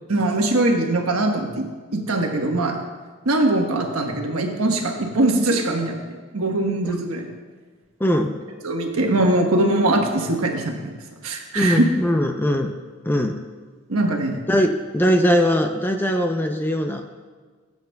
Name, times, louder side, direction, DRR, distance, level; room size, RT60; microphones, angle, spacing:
voice 1, 0.1-1.7 1.9-2.8 3.2-7.3 8.6-11.0 11.2-11.8 13.9-14.4, right 2 dB, 85° right, 2 dB, 1.3 m, -21 dB
voice 2, 8.0-8.3 11.5-12.7 13.1-13.3 14.5-17.2, equal, 10° left, 4 dB, 0.5 m, -20 dB
17.0 x 8.0 x 2.3 m, 1.5 s
head